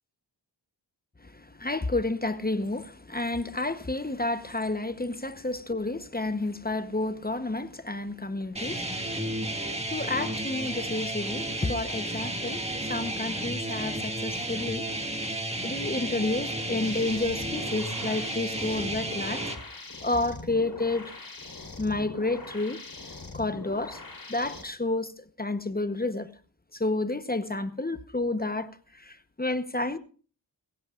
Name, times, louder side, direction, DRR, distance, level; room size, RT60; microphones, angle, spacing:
voice 1, 1.2-9.6 9.9-14.9 15.6-19.4 20.0-21.1 21.8-22.8 23.3-24.0 24.3-26.3 26.7-30.0, left 2 dB, 20° left, 0.9 m, -30 dB
sound 1, 8.6-19.6, right 1 dB, 15° right, 2.0 m, -32 dB
sound 2, 16.8-24.6, left 3 dB, 50° left, 4.0 m, -42 dB
22.0 x 16.0 x 2.4 m
wide cardioid pair, 90°, 44 cm